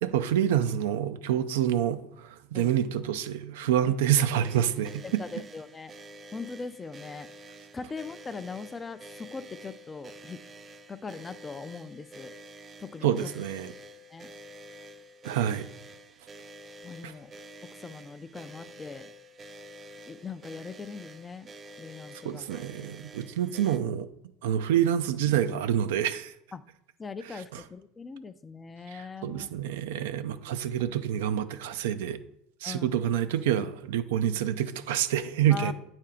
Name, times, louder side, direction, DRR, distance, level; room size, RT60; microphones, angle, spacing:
voice 1, 0.0-5.2 13.0-13.7 15.2-15.7 17.0-17.1 22.2-24.1 24.4-26.3 28.9-32.2 32.6-35.7, right 10 dB, 80° right, 0.4 m, -27 dB
sound 1, 4.4-23.8, right 1 dB, 30° right, 0.5 m, -48 dB
voice 2, 5.0-5.9 6.3-7.3 7.7-10.4 10.9-12.3 12.8-13.3 14.1-14.3 16.8-17.3 17.6-19.1 20.1-21.5 21.8-22.5 26.5-26.6 27.0-29.6 32.6-33.0 35.5-35.7, left 4 dB, 25° left, 0.4 m, -40 dB
8.9 x 4.4 x 3.7 m
hypercardioid pair, 90°, 0 cm